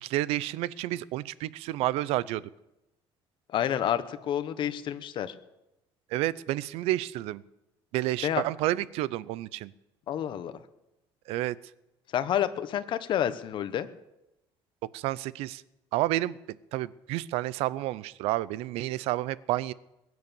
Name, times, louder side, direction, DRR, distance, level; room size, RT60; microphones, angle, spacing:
voice 1, 0.0-2.5 6.1-7.4 7.9-9.7 11.3-11.6 14.9-15.6 15.9-16.4 16.7-19.7, right 16 dB, 80° right, 19 dB, 0.6 m, -30 dB
voice 2, 3.5-5.3 8.2-8.4 10.1-10.5 12.1-13.9, left 10 dB, 50° left, 12 dB, 1.2 m, -29 dB
21.5 x 9.4 x 7.1 m, 0.92 s
cardioid pair, 130°, 10 cm